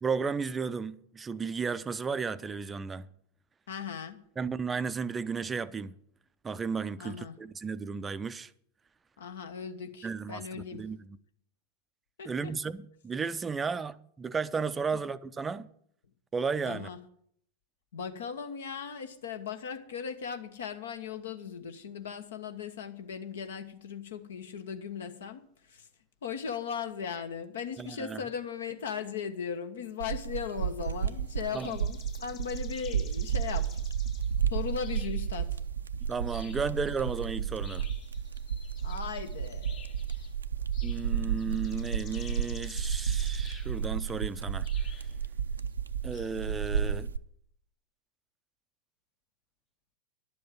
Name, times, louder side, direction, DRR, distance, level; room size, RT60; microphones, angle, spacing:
voice 1, 0.0-3.1 4.4-6.0 6.4-8.5 10.0-11.2 12.2-15.7 16.3-16.9 27.8-28.2 31.5-31.8 36.0-37.9 40.8-45.1 46.0-47.1, right 5 dB, 15° right, 0.5 m, -34 dB
voice 2, 3.7-4.2 7.0-7.4 9.2-10.8 12.2-12.5 16.6-17.0 17.9-25.4 25.7-25.9 26.2-33.8 34.5-35.6 36.4-36.5 38.8-40.3, left 7 dB, 65° left, 1.2 m, -38 dB
sound 1, 30.0-47.2, right 8 dB, 75° right, 0.5 m, -32 dB
sound 2, 30.4-31.2 31.5-34.4 34.8-35.5 36.0-40.3 40.7-43.8 44.6-45.2 46.1-46.8, left 7 dB, 35° left, 1.3 m, -52 dB
11.5 x 7.7 x 7.7 m
figure-of-eight pair, 90°, 0 cm